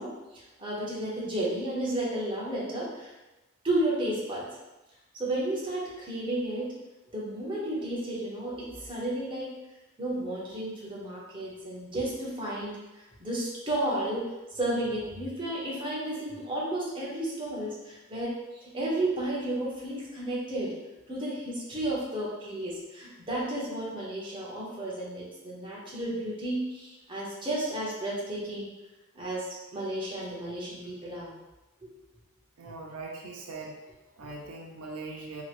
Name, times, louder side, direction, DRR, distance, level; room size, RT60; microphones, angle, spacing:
voice 1, 0.0-3.1 3.6-4.5 5.1-6.8 7.1-9.6 10.0-12.7 13.2-20.7 21.1-28.7 29.1-31.3 31.8-31.9, right 1 dB, 25° right, -6 dB, 0.8 m, -32 dB
voice 2, 32.6-35.4, right 3 dB, 90° right, -1 dB, 0.5 m, -41 dB
3.0 x 2.9 x 2.5 m, 1.0 s
head